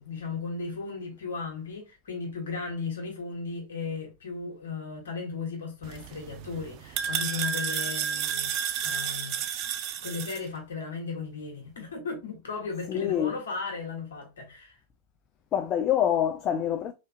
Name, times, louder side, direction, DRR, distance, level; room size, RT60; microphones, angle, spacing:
voice 1, 0.0-9.5 10.0-14.8, left 4 dB, 65° left, 1.3 m, -36 dB
sound 1, 5.8-10.4, right 8 dB, 40° right, 0.4 m, -31 dB
voice 2, 12.9-13.3 15.5-16.9, left 10 dB, 30° left, 0.3 m, -26 dB
3.5 x 2.9 x 2.6 m
figure-of-eight pair, 90°, 0 cm